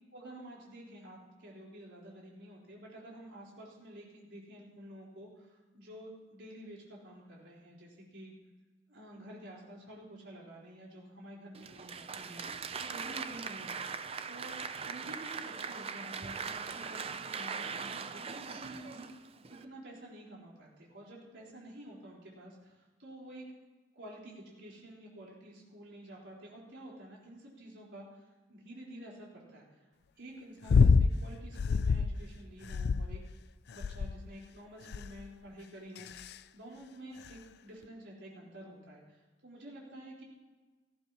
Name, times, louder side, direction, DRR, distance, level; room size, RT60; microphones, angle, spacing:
voice 1, 0.1-8.3 8.9-13.8 14.3-19.3 19.6-23.4 23.9-29.9 30.2-33.2 33.7-40.2, right 1 dB, 80° right, -4 dB, 4.1 m, -50 dB
Applause, 11.5-19.6, right 6 dB, 35° right, 0.5 m, -40 dB
sound 1, 30.7-31.1 31.6-32.2 32.7-33.3 33.8-34.3 34.9-35.3 36.0-36.3 37.3-37.4, left 5 dB, 60° left, 0.3 m, -26 dB
18.0 x 14.5 x 3.0 m, 1.3 s
head